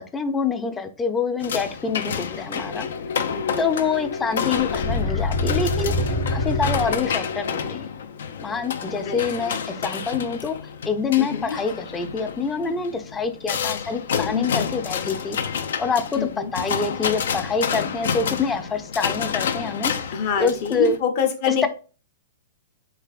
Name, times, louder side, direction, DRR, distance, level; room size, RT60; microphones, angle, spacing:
voice 1, 0.0-2.9 3.6-5.9 6.3-7.9 8.4-10.6 10.8-15.4 15.8-19.9 20.4-21.0 21.6-21.7, left 5 dB, 15° left, 7 dB, 0.5 m, -26 dB
sound 1, 1.4-21.0, left 7 dB, 70° left, 0.4 m, -29 dB
voice 2, 1.9-2.2 3.3-3.8 9.0-9.6 11.2-11.6 14.3-14.7 16.2-16.5 20.1-21.7, left 6 dB, 50° left, 4 dB, 0.8 m, -27 dB
sound 2, 4.6-7.4, left 2 dB, 85° left, 1.0 m, -25 dB
3.3 x 3.3 x 2.4 m, 0.36 s
hypercardioid pair, 115°, 0 cm